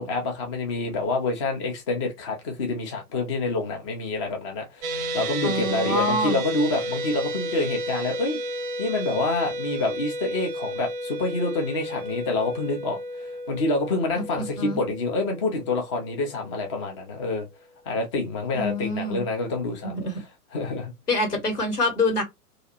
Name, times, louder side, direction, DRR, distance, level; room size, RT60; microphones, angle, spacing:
voice 1, 0.0-8.4 8.8-17.5 17.9-20.0 20.5-20.9, left 2 dB, 20° left, 0.4 m, -27 dB
sound 1, 4.8-17.2, right 1 dB, 30° right, 0.6 m, -33 dB
voice 2, 5.4-6.4 14.1-14.8 18.5-19.2 19.8-20.2 21.1-22.2, left 1 dB, 80° left, 1.4 m, -26 dB
2.4 x 2.4 x 2.6 m
figure-of-eight pair, 110°, 46 cm